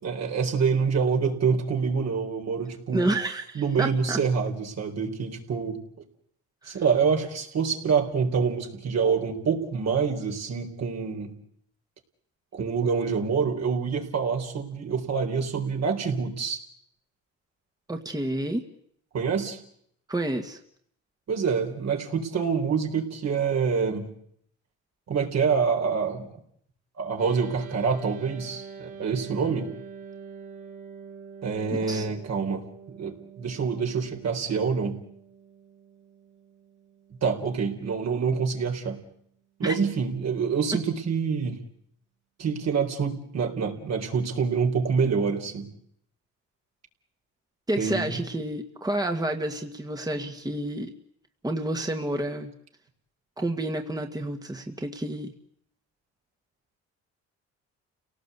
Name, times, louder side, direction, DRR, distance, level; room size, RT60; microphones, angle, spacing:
voice 1, 0.0-3.1 3.5-5.8 6.7-11.3 12.5-16.6 19.1-19.6 21.3-24.1 25.1-26.3 27.0-29.7 31.4-35.0 37.1-39.0 39.6-41.6 42.4-45.7 47.8-48.2, right 5 dB, 60° right, 3 dB, 4.2 m, -26 dB
voice 2, 2.9-4.2 6.6-6.8 17.9-18.6 20.1-20.6 31.7-32.1 39.6-39.7 47.7-50.9 51.4-52.5 53.4-55.3, right 1 dB, 15° right, 4 dB, 1.9 m, -29 dB
sound 1, 27.2-38.7, right 6 dB, 85° right, 3.2 m, -46 dB
29.5 x 18.0 x 8.3 m, 0.69 s
cardioid pair, 90°, 30 cm